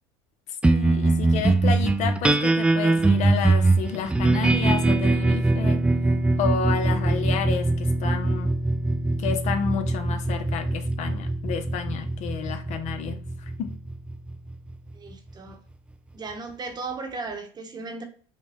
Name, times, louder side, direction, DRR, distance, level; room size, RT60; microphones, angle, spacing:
voice 1, 0.6-5.8 6.4-8.5 9.2-13.2 13.6-13.8, left 7 dB, 50° left, 8 dB, 0.6 m, -30 dB
sound 1, 0.6-15.3, right 2 dB, 10° right, 0.3 m, -23 dB
voice 2, 14.9-15.6 16.1-18.0, right 3 dB, 30° right, 5 dB, 1.0 m, -36 dB
5.1 x 2.2 x 3.5 m, 0.43 s
supercardioid pair, 100°, 15 cm